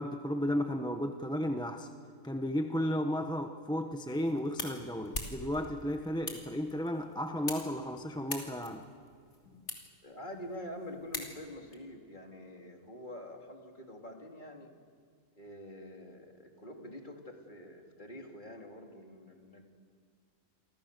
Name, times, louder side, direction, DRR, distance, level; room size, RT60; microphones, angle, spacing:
voice 1, 0.0-1.9 2.2-8.8, equal, 5° left, 5 dB, 1.0 m, -34 dB
sound 1, 3.9-11.7, left 2 dB, 55° left, 3.5 m, -44 dB
voice 2, 10.0-14.7 15.4-19.6, left 1 dB, 35° left, 2 dB, 3.0 m, -46 dB
29.0 x 25.0 x 6.8 m, 2.1 s
omnidirectional pair, 1.5 m